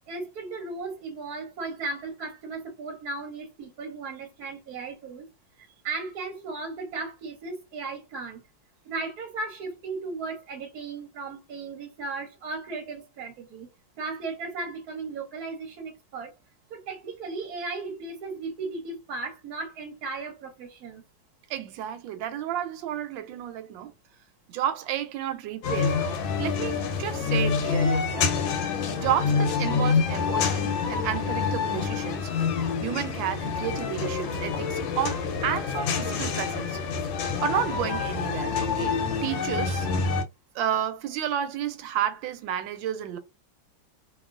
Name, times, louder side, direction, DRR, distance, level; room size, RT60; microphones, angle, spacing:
voice 1, 0.1-5.3 5.8-8.4 8.8-13.7 14.0-16.3 16.7-21.0, right 3 dB, 65° right, 1.1 m, -36 dB
voice 2, 21.5-23.9 24.5-28.3 28.9-32.3 32.8-36.8 37.4-39.9 40.5-43.2, right 10 dB, 85° right, 1.3 m, -31 dB
sound 1, 25.6-40.2, left 5 dB, 85° left, 1.4 m, -27 dB
3.0 x 2.6 x 2.4 m
omnidirectional pair, 2.1 m